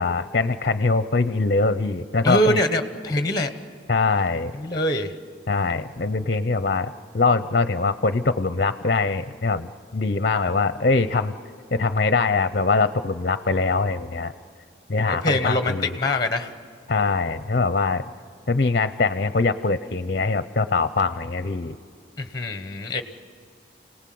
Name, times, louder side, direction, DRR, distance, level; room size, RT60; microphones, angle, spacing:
voice 1, 0.0-2.6 3.9-4.5 5.5-11.3 11.7-14.3 14.9-15.9 16.9-18.0 18.5-21.8, left 3 dB, 45° left, 12 dB, 0.6 m, -23 dB
voice 2, 2.2-3.5 4.6-5.1 14.9-16.5 22.2-23.0, left 1 dB, 20° left, 9 dB, 1.0 m, -24 dB
29.5 x 18.5 x 7.7 m, 2.4 s
head